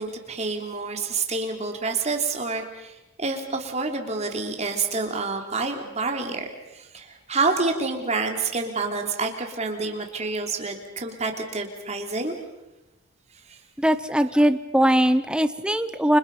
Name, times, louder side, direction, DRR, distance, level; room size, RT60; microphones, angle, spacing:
voice 1, 0.0-6.5 6.7-12.3 13.5-13.6, right 3 dB, 30° right, 3 dB, 3.2 m, -28 dB
voice 2, 13.8-16.2, equal, 5° right, 11 dB, 0.8 m, -20 dB
29.5 x 26.5 x 5.5 m, 1.0 s
head